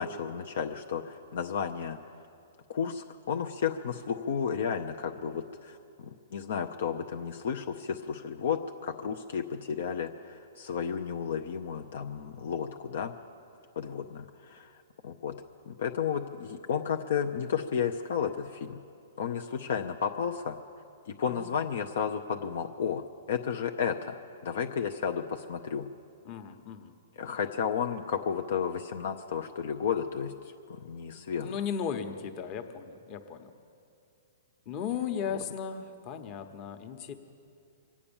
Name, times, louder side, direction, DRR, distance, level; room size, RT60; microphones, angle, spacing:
voice 1, 0.0-2.0 2.7-13.1 13.8-14.8 15.0-15.3 15.7-18.8 19.2-20.6 21.1-25.9 27.2-30.3 30.7-31.5, left 7 dB, 65° left, 5 dB, 0.7 m, -32 dB
voice 2, 26.2-26.9 31.4-33.5 34.6-37.1, left 7 dB, 40° left, 7 dB, 1.2 m, -36 dB
24.0 x 8.5 x 7.1 m, 2.5 s
hypercardioid pair, 135°, 0 cm